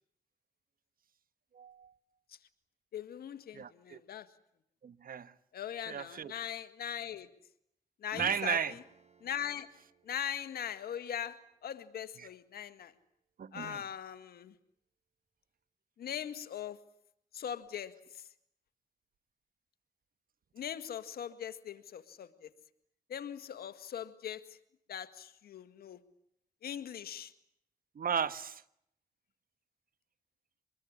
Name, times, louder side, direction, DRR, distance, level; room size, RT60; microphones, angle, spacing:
voice 1, 1.5-1.9 3.5-4.0 4.8-5.3 5.9-6.3 8.1-8.7 13.4-13.8 27.9-28.6, right 7 dB, 70° right, 1.3 m, -35 dB
voice 2, 2.9-4.3 5.5-7.3 8.0-8.8 9.2-9.7 10.0-12.9 13.5-14.5 16.0-16.8 17.3-18.2 20.5-22.5 23.1-24.6 24.9-26.0 26.6-27.3, left 9 dB, 85° left, 1.8 m, -40 dB
Acoustic guitar / Strum, 8.1-12.4, right 3 dB, 45° right, 4.2 m, -56 dB
25.0 x 21.5 x 9.8 m
supercardioid pair, 45°, 16 cm